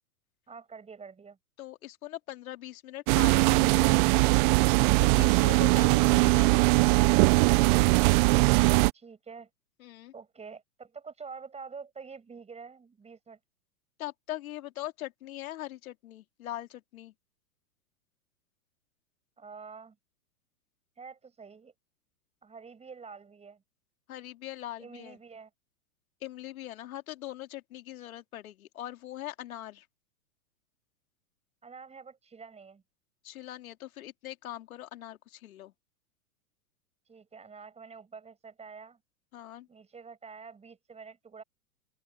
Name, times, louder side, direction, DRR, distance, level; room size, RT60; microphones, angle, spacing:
voice 1, 0.5-1.4 8.9-9.5 10.1-13.4 19.4-20.0 21.0-21.7 22.4-23.6 24.8-25.5 31.6-32.8 37.1-39.0 39.7-41.4, right 5 dB, 15° right, 6.6 m, -47 dB
voice 2, 1.6-4.3 5.0-6.7 9.8-10.1 14.0-17.1 24.1-25.2 26.2-29.9 33.2-35.7 39.3-39.7, left 14 dB, 70° left, 2.8 m, -41 dB
sound 1, 3.1-8.9, right 27 dB, 35° right, 0.5 m, -21 dB
open air
hypercardioid pair, 115°, 44 cm